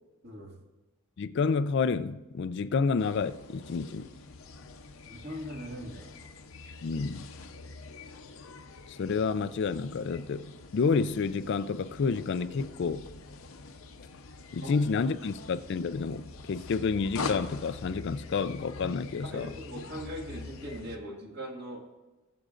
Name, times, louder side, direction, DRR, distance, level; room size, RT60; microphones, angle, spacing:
voice 1, 0.2-0.6 5.0-6.1 14.6-14.8 19.2-21.8, equal, 50° right, 1.9 m, -40 dB
voice 2, 1.2-4.1 6.8-7.3 8.9-13.1 14.5-19.5, left 5 dB, 50° left, 0.3 m, -29 dB
sound 1, 3.0-21.0, left 3 dB, 65° left, 0.7 m, -44 dB
19.5 x 7.7 x 2.5 m
head